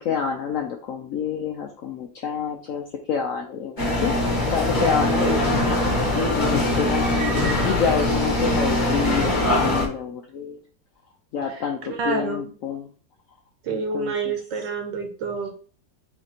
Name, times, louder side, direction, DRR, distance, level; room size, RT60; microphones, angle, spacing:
voice 1, 0.0-4.1 4.5-5.4 5.9-10.6 11.3-12.9 13.7-14.3, left 7 dB, 75° left, 3 dB, 0.7 m, -28 dB
sound 1, 3.8-9.9, left 1 dB, 30° left, 1.0 m, -22 dB
voice 2, 11.9-12.5 13.6-15.5, right 5 dB, 75° right, 4 dB, 1.5 m, -28 dB
4.2 x 3.1 x 4.1 m, 0.43 s
omnidirectional pair, 2.0 m